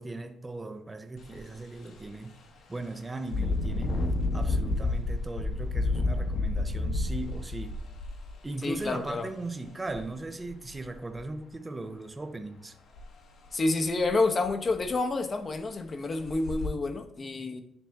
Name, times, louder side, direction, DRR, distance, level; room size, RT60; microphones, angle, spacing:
voice 1, 0.0-2.4 2.7-7.8 8.4-12.7, right 2 dB, 15° right, 0.5 m, -38 dB
Engine, 1.2-1.4 1.9-2.0 3.2-9.0 9.9-10.0 10.4-11.2 13.0-13.1 13.5-13.6 14.0-14.1 14.4-14.9 15.5-15.6 16.2-16.7, left 2 dB, 65° left, 1.0 m, -30 dB
voice 2, 8.6-9.3 13.5-17.6, left 3 dB, 30° left, 0.7 m, -29 dB
10.0 x 3.5 x 3.4 m
cardioid pair, 150°, 0 cm